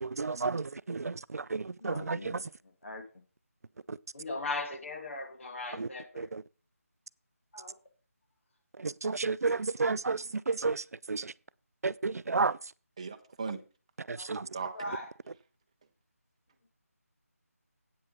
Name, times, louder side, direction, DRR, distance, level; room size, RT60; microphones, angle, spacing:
voice 1, 0.0-2.4 3.9-4.0 5.7-5.9 6.2-6.4 8.8-11.3 11.8-12.6 14.0-14.5, right 4 dB, 75° right, 0.4 m, -32 dB
voice 2, 1.9-2.4 2.8-3.0 4.1-6.3 7.5-7.7 14.2-14.3 14.8-15.0, left 2 dB, 55° left, 1.9 m, -38 dB
voice 3, 13.0-13.6 14.5-14.9, right 5 dB, 25° right, 0.7 m, -38 dB
8.8 x 6.8 x 5.2 m
figure-of-eight pair, 170°, 8 cm